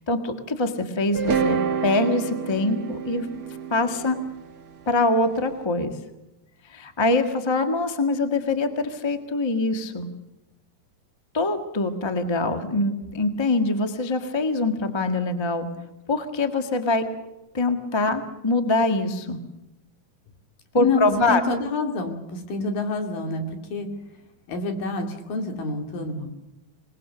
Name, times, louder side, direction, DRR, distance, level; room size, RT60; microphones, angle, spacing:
voice 1, 0.0-3.3 3.7-4.2 4.8-5.9 6.7-10.1 11.3-15.7 16.1-17.0 17.5-19.4 20.7-21.4, left 2 dB, 35° left, 7 dB, 0.4 m, -24 dB
sound 1, 1.1-5.3, right 6 dB, 40° right, 1.4 m, -28 dB
voice 2, 21.3-23.4 23.7-23.9 24.5-26.3, left 3 dB, 80° left, 4 dB, 4.4 m, -27 dB
26.5 x 20.0 x 6.8 m, 0.95 s
omnidirectional pair, 3.9 m